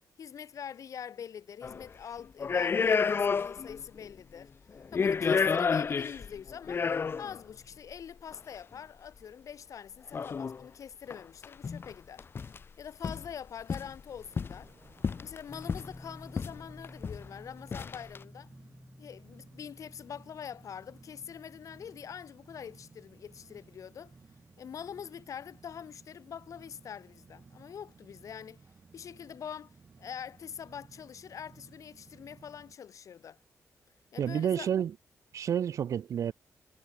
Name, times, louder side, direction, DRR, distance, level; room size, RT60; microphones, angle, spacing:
voice 1, 0.2-4.5 4.9-12.3 12.8-14.7 15.2-18.5 19.0-24.2 24.6-28.6 28.9-33.4 34.1-34.7, left 8 dB, 65° left, 3.5 m, -44 dB
sound 1, 1.6-1.9 2.4-3.8 4.1-4.2 4.8-7.4 8.3-8.4 10.1-10.6 11.1-11.2 11.4-11.9 12.2-12.6 13.0-13.3 13.7-14.6 15.0-16.0 16.4-16.6 16.8-17.3 17.7-18.2, left 5 dB, 40° left, 0.8 m, -30 dB
sound 2, 14.0-32.8, right 4 dB, 35° right, 3.8 m, -58 dB
sound 3, 15.5-28.4, left 1 dB, 10° left, 5.0 m, -55 dB
voice 2, 34.2-34.9 35.3-36.3, right 9 dB, 65° right, 0.4 m, -29 dB
wide cardioid pair, 130°, 6 cm